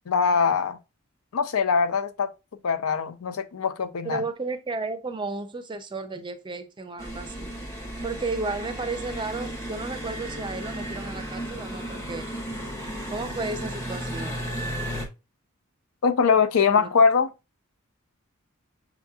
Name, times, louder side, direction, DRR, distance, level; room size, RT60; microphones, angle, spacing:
voice 1, 0.1-0.8 1.3-2.3 2.6-4.2 16.0-17.3, left 5 dB, 80° left, 0.5 m, -22 dB
voice 2, 4.0-7.5 8.0-12.3 13.1-14.4 16.7-16.9, right 3 dB, 20° right, 0.5 m, -33 dB
sound 1, 7.0-15.1, right 1 dB, 15° left, 0.9 m, -34 dB
6.9 x 2.9 x 2.3 m
head